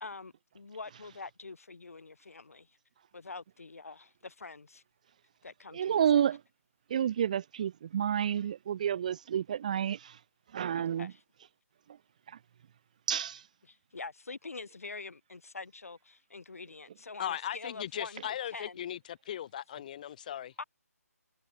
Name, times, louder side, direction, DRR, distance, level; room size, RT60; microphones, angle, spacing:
voice 1, 0.0-2.7 3.1-4.8 5.4-6.2 10.7-11.2 13.7-18.2 18.5-18.8 20.6-20.7, left 4 dB, 60° left, 1.7 m, -45 dB
voice 2, 5.7-6.4 6.9-10.2 10.5-11.1 12.3-12.4 13.1-13.5, right 9 dB, 25° right, 0.5 m, -30 dB
voice 3, 17.2-20.5, left 10 dB, 30° left, 1.9 m, -38 dB
figure-of-eight pair, 150°, 9 cm